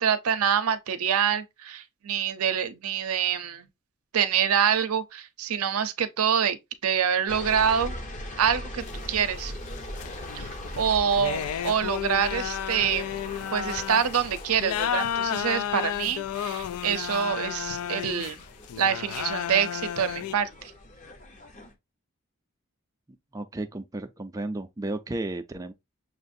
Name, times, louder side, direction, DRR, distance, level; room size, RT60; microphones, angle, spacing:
voice 1, 0.0-3.7 4.1-6.6 6.8-8.0 8.4-8.8 9.1-9.5 10.3-10.5 10.8-13.1 13.5-18.4 18.8-20.7, right 8 dB, 80° right, 0.6 m, -26 dB
sound 1, 7.3-21.7, left 1 dB, 35° left, 0.7 m, -41 dB
sound 2, 8.9-20.3, left 10 dB, 90° left, 0.3 m, -32 dB
voice 2, 23.3-25.7, right 2 dB, 15° right, 0.4 m, -33 dB
6.4 x 2.5 x 2.6 m
head